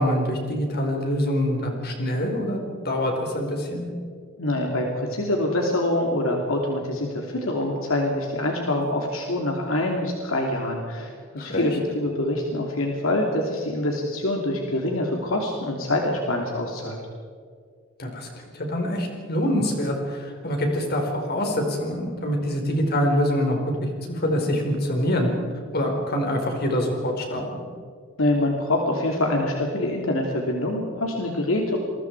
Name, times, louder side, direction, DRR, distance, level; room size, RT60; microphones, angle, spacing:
voice 1, 0.0-3.9 11.4-11.7 18.0-18.3 18.5-25.3 25.7-27.6, equal, 50° left, 2 dB, 4.6 m, -25 dB
voice 2, 4.4-17.0 28.2-31.8, left 1 dB, 75° left, 1 dB, 2.8 m, -25 dB
28.0 x 22.0 x 4.8 m, 2.1 s
head